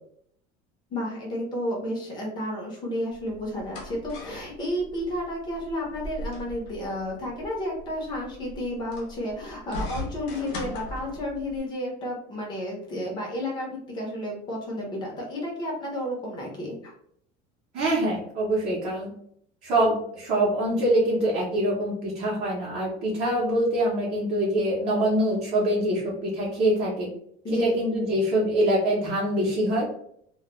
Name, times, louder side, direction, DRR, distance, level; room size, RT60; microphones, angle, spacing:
voice 1, 0.9-16.9 27.4-27.8, left 1 dB, 25° left, -1 dB, 0.7 m, -32 dB
sound 1, 3.1-11.6, left 1 dB, 85° left, 0.7 m, -39 dB
voice 2, 17.7-19.1 19.6-27.1 27.5-29.8, right 1 dB, 35° right, -9 dB, 0.7 m, -24 dB
2.2 x 2.2 x 2.9 m, 0.67 s
cardioid pair, 180°, 18 cm